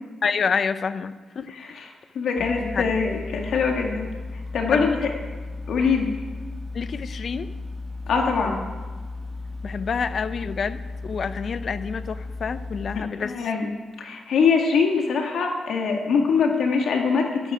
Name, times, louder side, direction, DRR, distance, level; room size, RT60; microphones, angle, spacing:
voice 1, 0.2-1.5 2.6-2.9 4.7-5.0 6.7-7.5 9.6-13.5, left 6 dB, 55° left, 13 dB, 0.7 m, -28 dB
voice 2, 1.5-1.9 2.2-4.1 4.5-5.1 5.7-6.1 8.1-8.6 13.0-13.7 14.0-17.5, left 5 dB, 75° left, 2 dB, 1.9 m, -23 dB
sound 1, 2.4-13.0, left 3 dB, ahead, 2.1 m, -35 dB
13.0 x 12.5 x 4.9 m, 1.4 s
cardioid pair, 75°, 0 cm